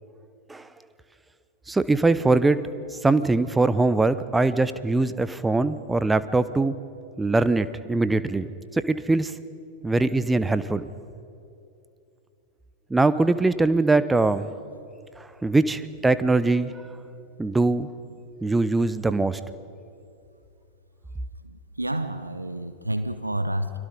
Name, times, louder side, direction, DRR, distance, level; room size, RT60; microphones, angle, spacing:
voice 1, 1.7-2.6 3.0-6.7 7.2-8.5 8.7-9.3 9.8-10.9 12.9-14.5 15.2-16.7 17.4-17.9 18.4-19.4, right 3 dB, 10° right, 14 dB, 0.8 m, -22 dB
voice 2, 21.4-23.8, right 1 dB, 85° right, 10 dB, 1.0 m, -29 dB
29.5 x 22.5 x 5.4 m, 2.7 s
figure-of-eight pair, 90°, 0 cm